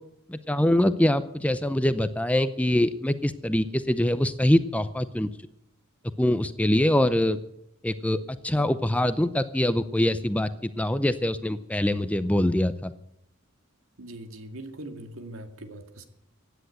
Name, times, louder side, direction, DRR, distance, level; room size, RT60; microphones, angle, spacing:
voice 1, 0.3-5.3 6.2-7.4 7.8-12.9, left 1 dB, 5° left, 12 dB, 0.5 m, -24 dB
voice 2, 14.0-16.0, right 1 dB, 70° right, 7 dB, 2.0 m, -41 dB
16.0 x 10.5 x 8.1 m, 0.77 s
head